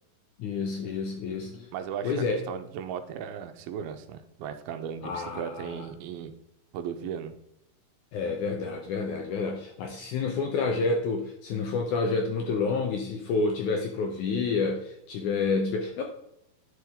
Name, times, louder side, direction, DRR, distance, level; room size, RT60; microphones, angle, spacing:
voice 1, 0.4-1.7 2.0-2.4 5.0-5.9 8.1-16.0, left 4 dB, 80° left, 3 dB, 1.8 m, -29 dB
voice 2, 1.7-6.3 6.7-7.3, right 8 dB, 80° right, 8 dB, 2.4 m, -36 dB
9.8 x 6.2 x 3.6 m, 0.80 s
omnidirectional pair, 4.5 m